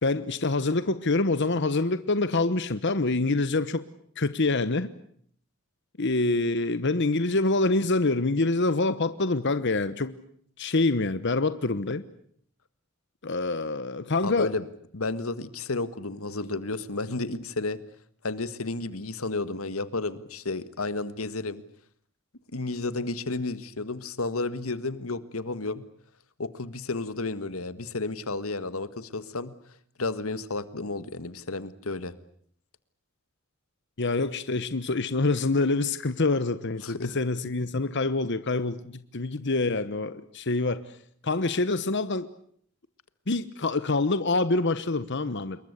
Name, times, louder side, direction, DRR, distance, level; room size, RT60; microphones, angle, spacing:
voice 1, 0.0-3.8 4.2-4.9 6.0-10.2 10.6-12.0 13.2-14.5 34.0-41.0 41.2-42.3 43.3-45.6, left 3 dB, 55° left, 13 dB, 1.1 m, -26 dB
voice 2, 14.2-14.6 14.9-17.8 18.2-21.6 22.5-25.8 26.4-29.5 30.0-32.1 36.8-37.2, left 3 dB, 90° left, 14 dB, 1.7 m, -32 dB
27.5 x 22.5 x 8.2 m, 0.62 s
head